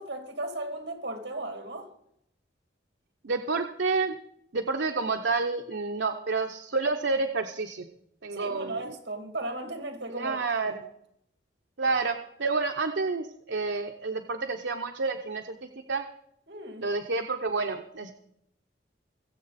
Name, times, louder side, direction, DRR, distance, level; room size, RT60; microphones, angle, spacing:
voice 1, 0.0-1.9 8.3-10.4 10.7-10.8 16.5-16.8, right 2 dB, 65° right, 2.6 m, -36 dB
voice 2, 3.2-4.2 4.5-7.9 8.2-8.8 10.1-10.7 11.8-16.1 16.8-18.1, right 3 dB, 80° right, 0.8 m, -29 dB
21.5 x 7.8 x 4.2 m
head